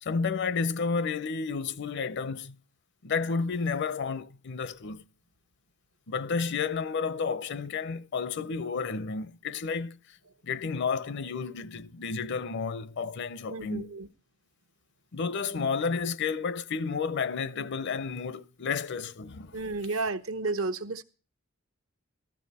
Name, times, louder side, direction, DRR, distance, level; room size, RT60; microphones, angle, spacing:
voice 1, 0.0-2.6 3.0-5.0 6.1-10.2 10.4-13.9 15.1-19.6, left 5 dB, 60° left, 0.6 m, -31 dB
voice 2, 13.5-14.1 19.5-21.0, right 3 dB, 80° right, 1.0 m, -32 dB
14.0 x 13.0 x 4.1 m
head